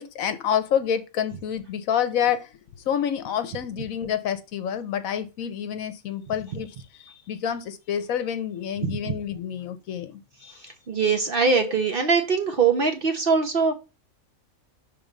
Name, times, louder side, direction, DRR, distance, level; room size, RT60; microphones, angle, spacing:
voice 1, 0.0-2.5 2.9-10.7, left 9 dB, 70° left, 1.1 m, -28 dB
voice 2, 8.8-9.1 10.9-13.7, right 5 dB, 50° right, 0.8 m, -22 dB
6.0 x 3.3 x 5.1 m
omnidirectional pair, 1.5 m